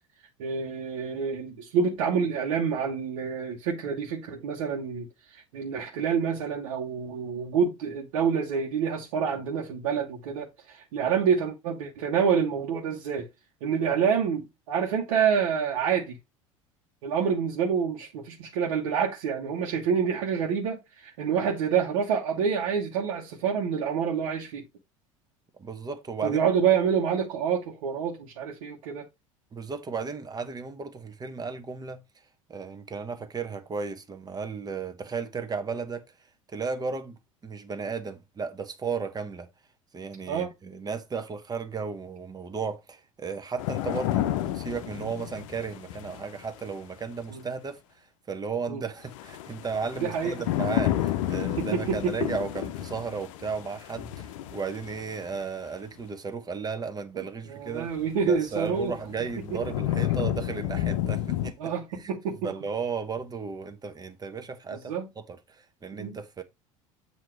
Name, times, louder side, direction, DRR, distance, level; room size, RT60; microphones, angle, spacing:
voice 1, 0.4-13.3 13.6-16.2 17.0-24.6 26.2-29.0 40.3-40.5 47.3-47.4 48.7-48.8 50.0-50.3 51.6-52.3 57.1-57.2 57.5-58.9 59.5-59.6 61.6-62.5 64.9-65.1 65.9-66.2, right 7 dB, 65° right, 1.3 m, -27 dB
voice 2, 25.6-26.5 29.5-32.0 32.5-36.0 36.5-37.2 37.4-39.5 39.9-57.9 58.2-64.9 65.3-66.4, right 5 dB, 25° right, 1.0 m, -34 dB
sound 1, 43.6-46.7 49.1-55.4 58.0-58.1 58.7-61.5, left 13 dB, 65° left, 0.6 m, -31 dB
7.7 x 2.9 x 4.5 m
hypercardioid pair, 75°, 17 cm